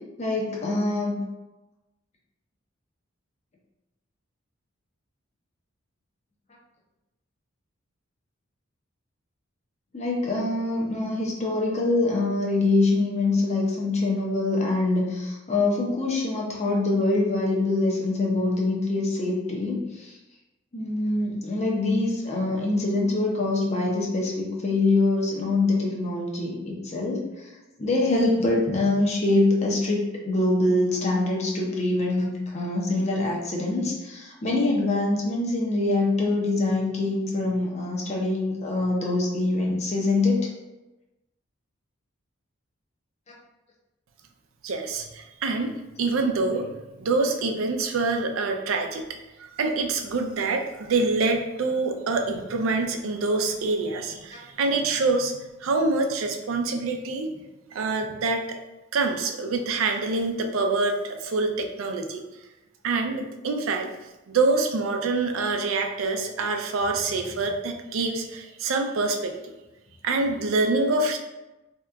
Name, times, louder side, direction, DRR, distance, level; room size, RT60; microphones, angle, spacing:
voice 1, 0.2-1.2 9.9-20.2 20.7-27.5 27.8-32.3 32.5-40.4, left 2 dB, 35° left, -2 dB, 0.6 m, -24 dB
voice 2, 44.6-45.7 46.0-46.7 47.0-49.0 49.4-55.3 55.6-57.3 57.7-58.6 58.9-62.2 62.8-63.9 64.3-69.3 70.0-71.2, right 3 dB, 80° right, 4 dB, 0.4 m, -25 dB
2.8 x 2.3 x 3.4 m, 1.0 s
head